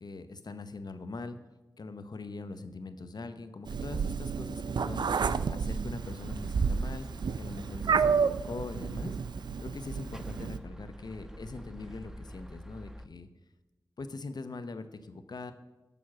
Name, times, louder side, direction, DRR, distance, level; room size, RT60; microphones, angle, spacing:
voice 1, 0.0-1.4 1.8-5.1 5.5-7.1 7.4-9.2 9.6-13.3 14.0-15.5, left 3 dB, 65° left, 10 dB, 0.7 m, -42 dB
Meow, 3.7-10.6, right 6 dB, 80° right, 0.4 m, -30 dB
sound 1, 6.0-13.1, equal, 5° right, 0.5 m, -47 dB
6.9 x 6.2 x 7.3 m, 1.1 s
wide cardioid pair, 55°, 7 cm